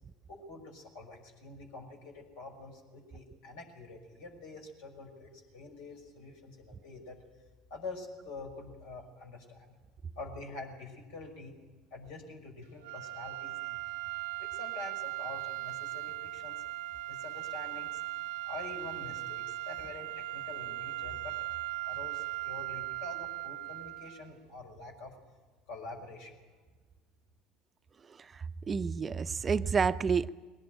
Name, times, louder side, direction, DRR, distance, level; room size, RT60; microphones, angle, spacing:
voice 1, 0.3-7.2 7.7-9.7 10.2-11.6 11.9-13.8 14.4-16.6 17.1-18.0 18.5-21.6 21.8-25.2 25.7-26.4, left 3 dB, 70° left, 2 dB, 5.7 m, -46 dB
sound 1, 12.8-24.3, right 16 dB, 70° right, 0.9 m, -38 dB
voice 2, 28.1-30.3, right 5 dB, 30° right, 12 dB, 0.7 m, -30 dB
21.5 x 19.0 x 9.1 m, 1.4 s
hypercardioid pair, 70°, 0 cm